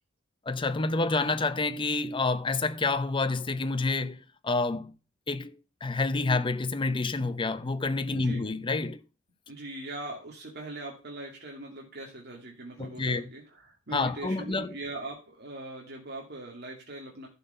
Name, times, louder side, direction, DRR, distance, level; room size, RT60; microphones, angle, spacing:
voice 1, 0.5-4.9 5.3-9.0 12.8-13.3 13.9-14.7, left 3 dB, 25° left, 0.7 m, -28 dB
voice 2, 8.1-8.4 9.5-17.3, right 2 dB, 55° right, 2.5 m, -41 dB
11.5 x 5.7 x 6.8 m
head